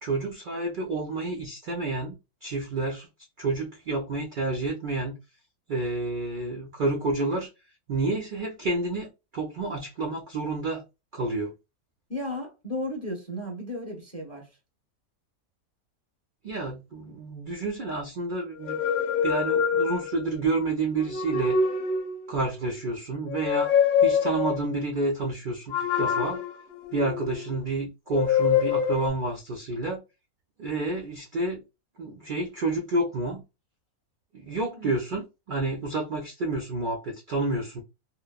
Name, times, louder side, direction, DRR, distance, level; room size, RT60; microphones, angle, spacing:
voice 1, 0.0-3.1 3.4-5.2 5.7-7.5 7.9-10.8 11.1-11.5 16.4-18.8 19.2-21.6 22.3-23.7 24.0-26.4 26.9-30.0 30.6-31.6 32.0-33.4 34.3-37.8, right 2 dB, 60° right, 0.5 m, -29 dB
voice 2, 12.1-14.6 34.8-34.9, left 1 dB, 15° left, 0.6 m, -34 dB
sound 1, 18.6-20.4 21.0-22.3 23.3-24.6 25.7-27.5 28.1-29.1, left 7 dB, 75° left, 1.0 m, -25 dB
2.9 x 2.0 x 2.2 m
omnidirectional pair, 1.5 m